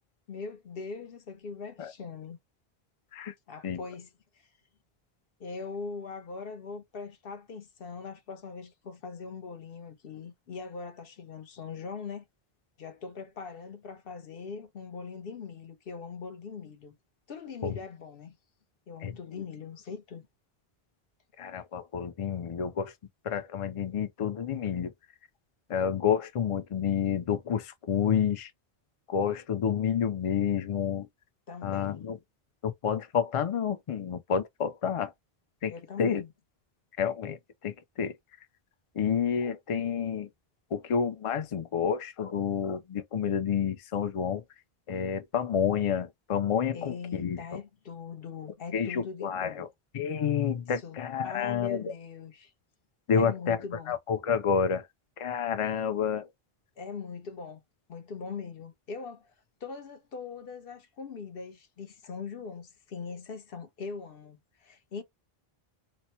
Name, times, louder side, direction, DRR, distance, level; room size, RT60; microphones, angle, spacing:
voice 1, 0.3-2.4 3.5-4.1 4.3-4.5 5.4-12.2 12.8-16.9 17.3-18.3 18.9-20.3 31.5-32.0 35.7-36.3 46.7-49.7 50.8-51.0 51.2-52.5 53.1-53.9 56.8-57.6 57.9-59.3 59.6-65.0, left 5 dB, 70° left, 1.0 m, -41 dB
voice 2, 21.4-22.9 23.2-24.9 25.7-28.5 29.1-31.1 31.6-32.2 32.6-35.1 35.6-35.7 36.0-36.2 37.0-38.2 39.0-40.3 40.7-44.4 44.9-47.6 48.7-49.7 49.9-51.9 53.1-53.6 53.9-54.9 55.2-56.3, left 7 dB, 50° left, 0.4 m, -29 dB
3.0 x 2.1 x 4.1 m
omnidirectional pair, 1.0 m